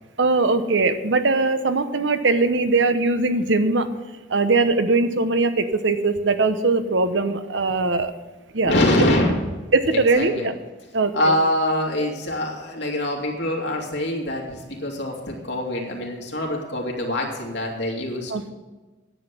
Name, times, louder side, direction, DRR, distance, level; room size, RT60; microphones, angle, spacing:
voice 1, 0.2-3.9 4.3-8.1 8.5-8.8 9.7-10.5 10.9-11.3 18.3-18.5, right 3 dB, 80° right, 9 dB, 0.9 m, -20 dB
voice 2, 8.6-9.4 9.9-10.5 11.1-18.3, left 1 dB, 65° left, -1 dB, 2.6 m, -24 dB
10.5 x 8.2 x 6.9 m, 1.2 s
head